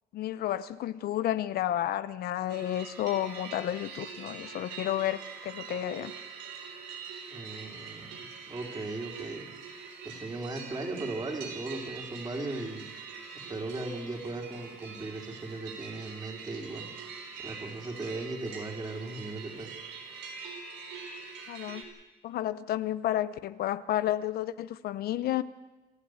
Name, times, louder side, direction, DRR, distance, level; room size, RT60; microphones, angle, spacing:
voice 1, 0.1-6.1 21.5-21.9 22.2-25.4, left 12 dB, 65° left, 14 dB, 0.7 m, -31 dB
sound 1, 2.5-21.8, right 6 dB, 90° right, 3.7 m, -44 dB
voice 2, 7.3-9.5 10.0-12.9 13.5-16.9 17.4-19.7, right 2 dB, 25° right, 2 dB, 3.8 m, -37 dB
27.0 x 13.0 x 8.0 m, 1.1 s
cardioid pair, 110°, 17 cm